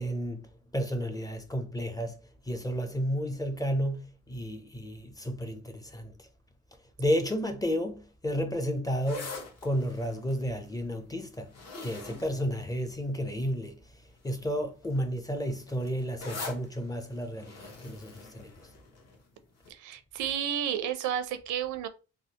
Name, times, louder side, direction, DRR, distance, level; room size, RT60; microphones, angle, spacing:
voice 1, 0.0-6.3 7.0-11.5 11.8-18.6, equal, 10° left, 0.5 m, -32 dB
sound 1, 8.9-13.3 14.0-14.3 14.6-19.2 19.6-19.7, left 3 dB, 55° left, 1.1 m, -44 dB
voice 2, 19.7-21.9, right 9 dB, 85° right, 0.5 m, -31 dB
3.5 x 2.0 x 2.8 m
cardioid pair, 90°, 30 cm